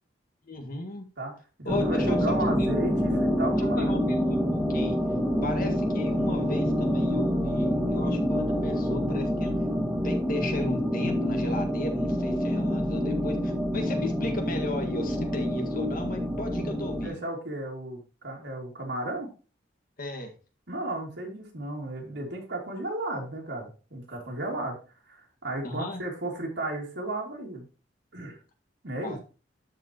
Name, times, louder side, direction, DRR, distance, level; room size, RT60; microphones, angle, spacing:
voice 1, 0.4-1.1 1.6-2.8 3.6-4.4 4.7-5.0 5.4-9.5 10.0-17.2 20.0-20.3 25.6-26.0 29.0-29.2, left 1 dB, 50° left, 3 dB, 1.8 m, -35 dB
voice 2, 1.6-4.0 17.0-19.3 20.7-24.8 25.1-27.6 28.1-28.4 28.8-29.2, right 1 dB, 70° right, 0 dB, 2.6 m, -34 dB
sound 1, 1.7-17.1, equal, 5° right, 1.7 m, -27 dB
12.5 x 4.7 x 2.9 m, 0.33 s
head